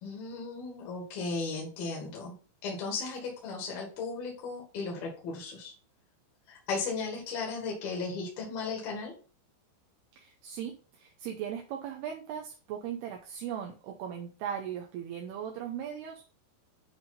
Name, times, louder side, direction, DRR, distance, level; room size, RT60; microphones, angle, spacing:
voice 1, 0.0-2.3 2.6-5.7 6.5-9.1, left 4 dB, 60° left, -2 dB, 3.5 m, -36 dB
voice 2, 10.2-16.3, right 9 dB, 80° right, 1 dB, 2.6 m, -38 dB
10.5 x 3.6 x 4.0 m, 0.37 s
omnidirectional pair, 5.1 m